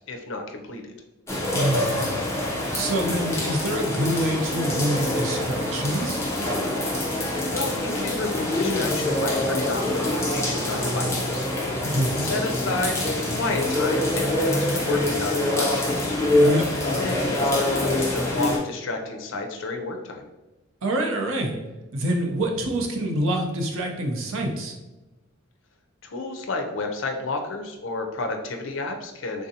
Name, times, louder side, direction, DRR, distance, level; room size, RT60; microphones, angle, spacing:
voice 1, 0.1-1.0 7.3-11.5 12.1-16.1 16.8-20.3 26.0-29.5, left 2 dB, 65° left, 4 dB, 0.5 m, -31 dB
sound 1, 1.3-18.6, left 1 dB, 15° left, 0.5 m, -25 dB
voice 2, 1.5-2.2 2.7-6.2 11.8-12.2 16.4-16.6 20.8-21.6 21.9-24.7, right 1 dB, 80° right, 1 dB, 0.6 m, -26 dB
3.6 x 2.6 x 2.7 m, 1.1 s
head